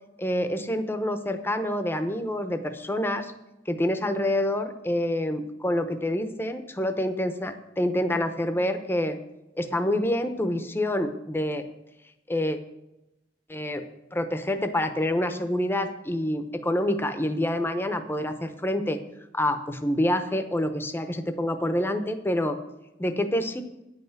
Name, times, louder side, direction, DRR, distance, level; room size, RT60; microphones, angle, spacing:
voice 1, 0.2-3.3 3.7-9.2 9.6-11.6 12.3-12.6 13.5-13.8 14.1-19.0 19.3-22.6 23.0-23.6, left 1 dB, 10° left, 8 dB, 0.8 m, -27 dB
9.8 x 5.7 x 8.0 m, 0.93 s
head